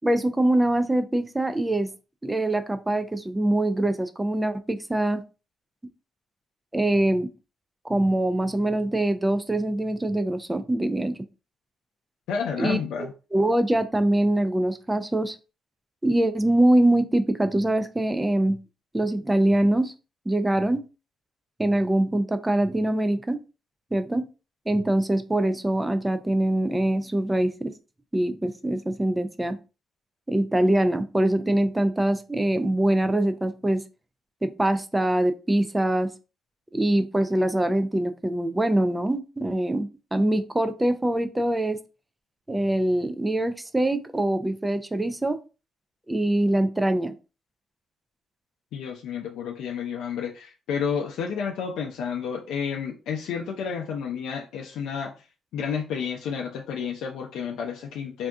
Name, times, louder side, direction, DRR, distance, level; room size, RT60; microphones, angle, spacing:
voice 1, 0.0-1.9 2.2-5.2 6.7-7.3 7.8-11.2 12.6-12.8 13.3-15.4 16.0-18.6 18.9-19.9 20.3-20.8 21.6-23.4 23.9-24.3 24.7-27.7 28.1-29.6 30.3-33.8 34.4-36.1 36.7-41.8 42.5-45.4 46.1-47.1, right 1 dB, 10° right, 10 dB, 0.4 m, -23 dB
voice 2, 12.3-13.1 48.7-55.1 55.5-58.3, left 6 dB, 85° left, 1 dB, 0.4 m, -30 dB
2.6 x 2.3 x 3.4 m, 0.32 s
cardioid pair, 90°, 0 cm